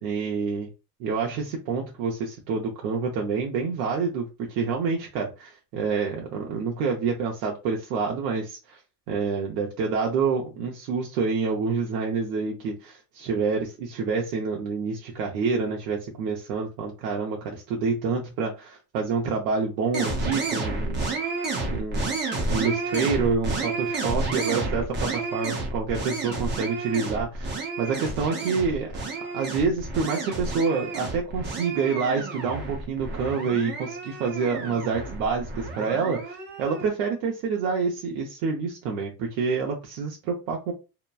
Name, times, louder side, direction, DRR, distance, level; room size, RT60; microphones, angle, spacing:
voice 1, 0.0-0.7 1.0-8.8 9.1-21.3 21.7-22.2 22.5-27.5 27.8-28.9 29.3-40.7, right 5 dB, 85° right, 0 dB, 0.8 m, -27 dB
sound 1, 19.9-36.9, right 3 dB, 20° right, 0.6 m, -31 dB
2.9 x 2.2 x 2.3 m, 0.30 s
cardioid pair, 140°, 50 cm